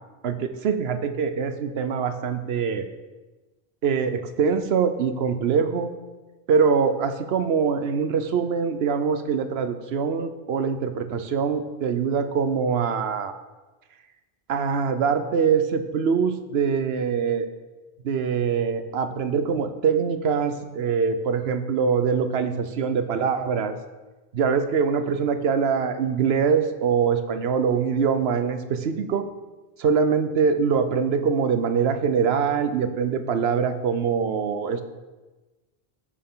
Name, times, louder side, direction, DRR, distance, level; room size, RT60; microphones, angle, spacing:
voice 1, 0.2-2.9 3.8-5.9 6.5-13.3 14.5-17.5 18.0-23.7 24.3-29.2 29.8-34.8, right 6 dB, 80° right, 9 dB, 1.0 m, -23 dB
14.0 x 6.5 x 3.8 m, 1.2 s
omnidirectional pair, 1.0 m